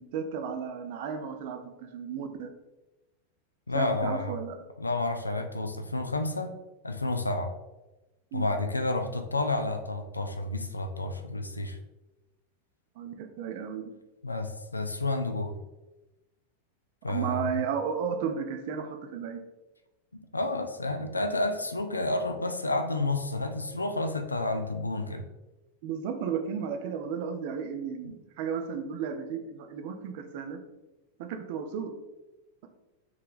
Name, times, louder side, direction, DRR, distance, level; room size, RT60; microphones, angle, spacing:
voice 1, 0.0-2.5 3.7-4.6 8.3-8.6 13.0-13.8 17.1-19.4 25.8-30.6 31.2-31.9, right 7 dB, 50° right, 6 dB, 0.4 m, -34 dB
voice 2, 3.7-4.4 4.8-6.5 6.8-7.5 8.3-11.8 14.2-15.6 17.0-17.5 20.3-25.2 28.0-28.1, left 2 dB, 80° left, 7 dB, 0.3 m, -30 dB
3.6 x 3.2 x 2.5 m, 1.0 s
figure-of-eight pair, 90°, 0 cm